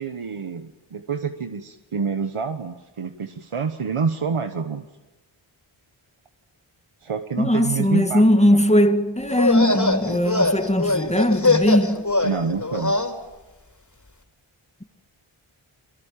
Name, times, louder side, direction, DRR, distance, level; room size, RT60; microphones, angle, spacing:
voice 1, 0.0-4.8 7.0-8.6 9.6-10.2 12.2-13.0, right 5 dB, 80° right, 1.4 m, -28 dB
voice 2, 7.4-12.1, equal, 15° left, 2.3 m, -19 dB
sound 1, 9.3-13.1, left 2 dB, 35° left, 4.3 m, -22 dB
29.5 x 22.5 x 7.5 m
wide cardioid pair, 45°, 50 cm